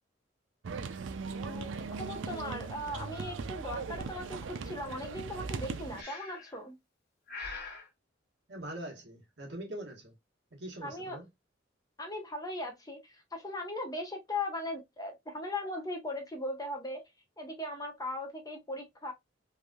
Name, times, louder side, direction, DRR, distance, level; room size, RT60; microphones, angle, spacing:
sound 1, 0.6-6.0, right 4 dB, 80° right, 0.4 m, -39 dB
voice 1, 1.4-6.8 10.8-11.2 12.0-17.0 17.4-19.1, left 1 dB, 20° left, 0.7 m, -38 dB
Breathing, 6.0-6.6 7.3-7.9, left 4 dB, 50° left, 1.2 m, -42 dB
voice 2, 8.5-10.1 10.5-11.3, right 1 dB, 60° right, 1.2 m, -43 dB
3.3 x 2.5 x 2.3 m
head